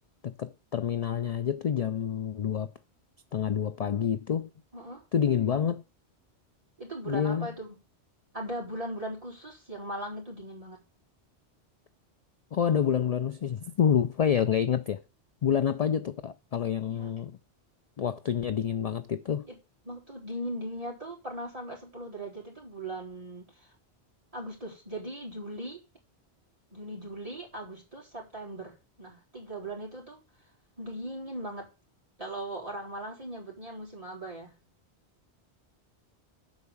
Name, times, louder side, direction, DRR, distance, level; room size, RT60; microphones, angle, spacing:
voice 1, 0.2-2.7 3.3-4.5 5.1-5.8 7.1-7.5 12.5-15.0 15.4-17.4 18.0-19.5, left 8 dB, 50° left, 0.4 m, -28 dB
voice 2, 4.7-5.0 6.8-7.8 8.3-10.8 16.9-17.1 19.5-19.6 19.8-23.7 24.3-25.8 26.7-30.2 30.8-31.7 32.2-34.5, right 1 dB, 30° right, 3.9 m, -39 dB
8.1 x 4.8 x 7.1 m
omnidirectional pair, 1.2 m